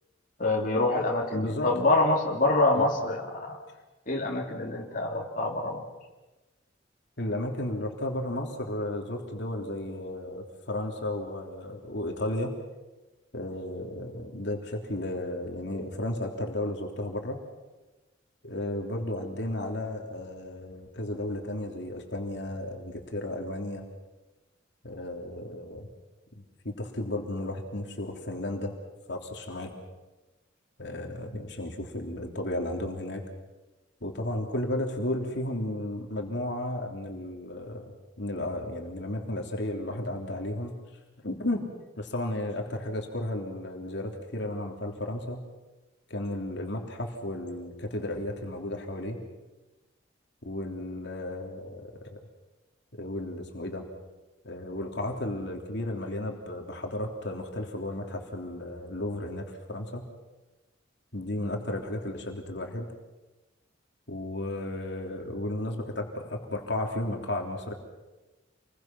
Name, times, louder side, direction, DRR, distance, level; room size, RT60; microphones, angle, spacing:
voice 1, 0.4-3.6 4.1-5.9, left 2 dB, 45° left, -2 dB, 3.2 m, -26 dB
voice 2, 1.3-1.7 2.8-2.9 7.2-12.5 13.3-17.4 18.4-23.8 24.8-25.9 26.6-28.7 29.1-29.7 30.8-33.2 34.0-40.7 41.2-41.7 42.0-45.4 46.1-49.2 50.4-52.2 52.9-53.8 54.4-60.0 61.1-62.9 64.1-67.7, left 1 dB, 65° left, 2 dB, 3.3 m, -33 dB
28.5 x 22.5 x 6.1 m, 1.1 s
head